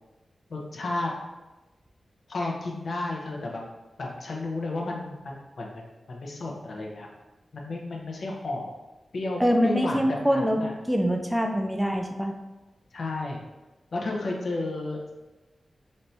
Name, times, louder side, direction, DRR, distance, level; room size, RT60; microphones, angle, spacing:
voice 1, 0.5-1.1 2.3-3.6 4.0-7.1 7.5-8.7 9.1-10.7 12.9-13.4 13.9-15.1, left 2 dB, 70° left, -1 dB, 0.8 m, -32 dB
voice 2, 9.4-10.6 10.9-12.3, equal, 5° right, 3 dB, 0.4 m, -24 dB
4.2 x 2.8 x 3.3 m, 1.1 s
wide cardioid pair, 90°, 0 cm